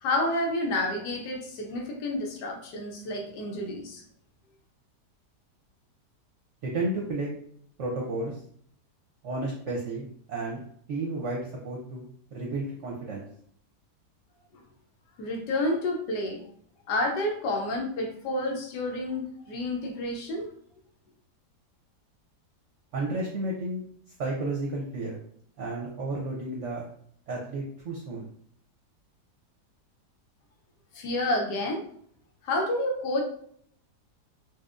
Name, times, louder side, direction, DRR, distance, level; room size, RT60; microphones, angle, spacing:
voice 1, 0.0-4.0 15.2-16.4 16.9-20.5 30.9-31.8 32.4-33.2, left 1 dB, 85° left, 1 dB, 1.3 m, -29 dB
voice 2, 6.6-7.3 7.8-8.4 9.2-10.6 10.9-13.3 22.9-23.8 24.2-25.2 25.6-26.8 27.3-28.3, right 2 dB, 60° right, -2 dB, 0.8 m, -32 dB
4.4 x 2.4 x 2.4 m, 0.62 s
omnidirectional pair, 1.8 m